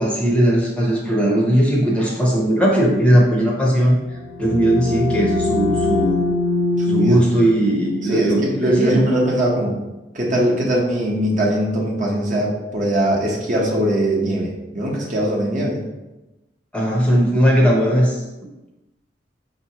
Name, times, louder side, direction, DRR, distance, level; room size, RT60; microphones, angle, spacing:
voice 1, 0.0-4.0 4.4-6.2 6.9-9.0 16.7-18.2, right 1 dB, 5° left, -3 dB, 0.7 m, -18 dB
sound 1, 4.0-9.6, left 2 dB, 90° left, 0.6 m, -24 dB
voice 2, 6.8-7.2 8.0-9.7 10.1-15.8, right 1 dB, 45° right, -3 dB, 0.9 m, -21 dB
5.3 x 2.8 x 2.8 m, 1.0 s
head